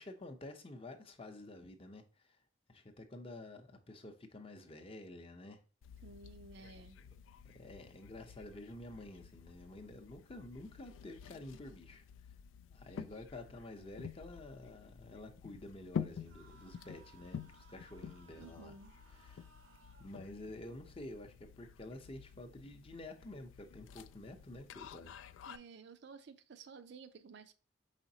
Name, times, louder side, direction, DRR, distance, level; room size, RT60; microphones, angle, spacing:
voice 1, 0.0-2.0 2.3-2.4 2.7-5.6 6.6-7.1 7.4-12.0 12.7-18.7 19.1-19.5 20.0-25.1, left 2 dB, 30° left, 0.6 m, -50 dB
sound 1, 5.8-25.6, left 7 dB, 85° left, 0.3 m, -50 dB
voice 2, 6.0-7.0 18.4-18.9 25.5-27.5, right 4 dB, 60° right, 0.5 m, -54 dB
sound 2, 16.2-20.2, right 4 dB, 80° right, 0.9 m, -64 dB
4.9 x 3.9 x 2.7 m
head